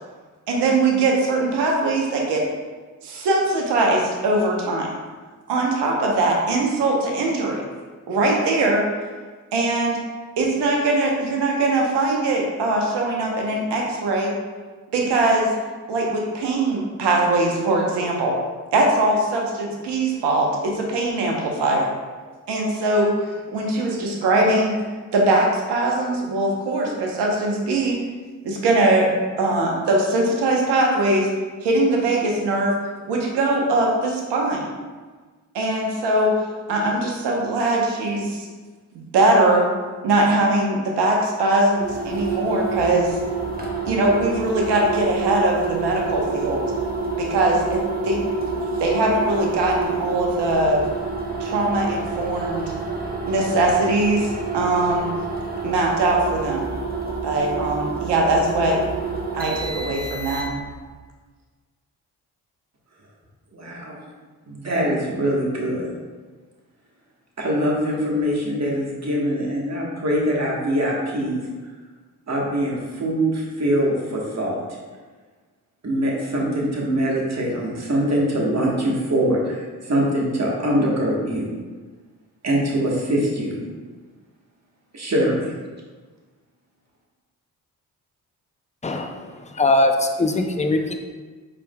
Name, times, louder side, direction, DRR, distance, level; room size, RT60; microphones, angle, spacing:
voice 1, 0.5-2.4 3.0-4.9 5.5-7.6 8.1-8.8 9.5-10.0 10.4-14.3 14.9-15.5 15.9-18.3 18.7-21.9 22.5-23.1 23.5-24.7 25.1-27.9 28.4-29.1 29.4-31.3 31.6-32.7 33.1-34.7 35.5-36.3 36.7-38.5 39.1-39.7 40.0-43.1 43.9-46.6 47.2-48.2 48.8-50.8 51.4-52.6 53.3-55.1 55.6-56.6 57.2-58.8 59.3-60.5, right 2 dB, 75° right, 0 dB, 1.0 m, -21 dB
sound 1, 41.8-60.8, right 3 dB, 20° right, 1.2 m, -28 dB
voice 2, 63.5-64.0 64.5-65.9 67.4-71.4 72.3-74.6 75.8-81.5 82.4-83.6 84.9-85.5, equal, 40° right, -2 dB, 1.5 m, -23 dB
voice 3, 88.8-89.2 89.5-91.0, left 2 dB, 15° left, 4 dB, 0.6 m, -20 dB
5.0 x 4.6 x 2.3 m, 1.4 s
supercardioid pair, 45°, 41 cm